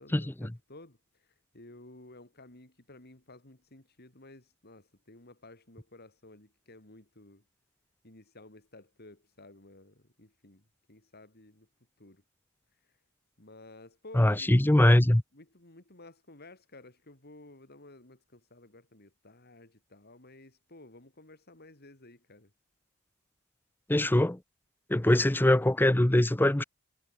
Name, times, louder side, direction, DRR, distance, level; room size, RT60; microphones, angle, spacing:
voice 1, 0.0-7.4 8.0-11.7 12.0-12.2 13.4-14.9 15.3-22.5, left 2 dB, 45° left, 4.1 m, -54 dB
voice 2, 14.2-15.2 23.9-24.4 24.9-26.6, left 1 dB, 10° left, 0.6 m, -22 dB
head